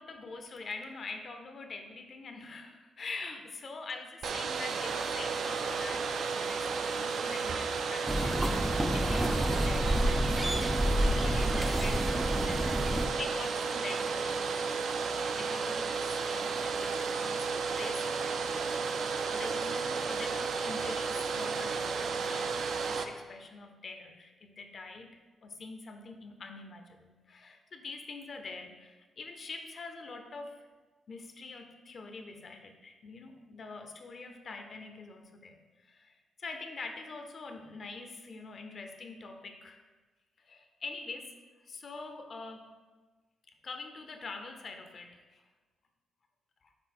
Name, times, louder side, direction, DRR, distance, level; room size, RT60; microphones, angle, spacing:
voice 1, 0.0-8.6 8.9-10.3 11.0-14.7 15.0-18.3 18.7-30.6 31.1-39.8 40.4-41.2 41.7-42.7 43.6-45.4, left 3 dB, 45° left, 5 dB, 0.6 m, -45 dB
Domestic sounds home sounds, 4.2-23.0, right 5 dB, 65° right, 0.4 m, -33 dB
sound 1, 4.8-10.2, right 3 dB, 85° right, 0.9 m, -47 dB
sound 2, 8.1-13.1, equal, 10° right, 0.4 m, -29 dB
6.1 x 3.8 x 4.3 m, 1.3 s
cardioid pair, 105°, 0 cm